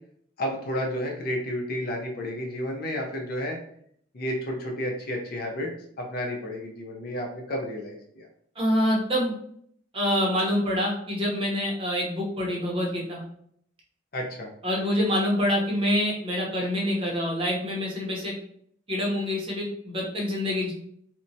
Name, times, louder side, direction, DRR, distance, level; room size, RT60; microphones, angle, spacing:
voice 1, 0.4-3.6 4.1-5.7 6.0-8.3 14.1-14.5, equal, 55° left, 0 dB, 0.6 m, -31 dB
voice 2, 8.6-9.3 9.9-13.2 14.6-18.4 18.9-20.7, equal, 30° right, -2 dB, 0.7 m, -26 dB
2.8 x 2.1 x 2.6 m, 0.66 s
head